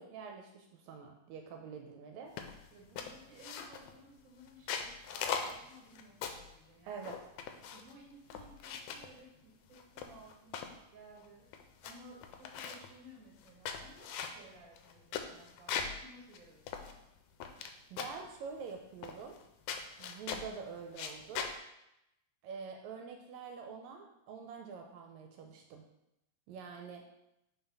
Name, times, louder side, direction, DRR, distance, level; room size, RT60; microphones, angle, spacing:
voice 1, 0.0-2.3 6.9-7.2 17.9-19.3 20.0-21.5 22.4-25.8 26.5-27.0, right 5 dB, 80° right, 3 dB, 1.8 m, -46 dB
sound 1, 2.4-2.7 3.0-3.9 4.5-6.5 7.0-7.9 8.3-9.1 9.7-10.8 11.2-11.3 11.5-11.9 12.2-12.9 13.4-16.0 16.3-16.4 16.7-17.7 18.0-18.3 19.0-19.4 19.7-20.5 20.9-21.5, left 7 dB, 80° left, 1.7 m, -40 dB
voice 2, 2.7-7.2 7.7-11.5 11.8-16.9, right 1 dB, 40° right, -3 dB, 1.3 m, -57 dB
4.5 x 4.0 x 5.3 m, 0.86 s
omnidirectional pair, 3.4 m